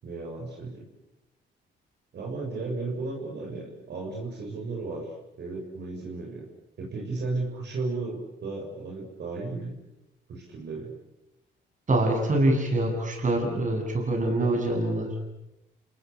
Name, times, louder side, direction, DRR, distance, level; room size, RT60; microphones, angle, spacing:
voice 1, 0.0-0.8 2.1-5.1 5.4-6.5 6.8-9.7 10.3-11.0, right 3 dB, 60° right, -1 dB, 6.9 m, -34 dB
voice 2, 11.9-15.1, right 1 dB, 40° right, 3 dB, 8.0 m, -25 dB
29.5 x 19.5 x 8.6 m, 0.91 s
cardioid pair, 90°, 20 cm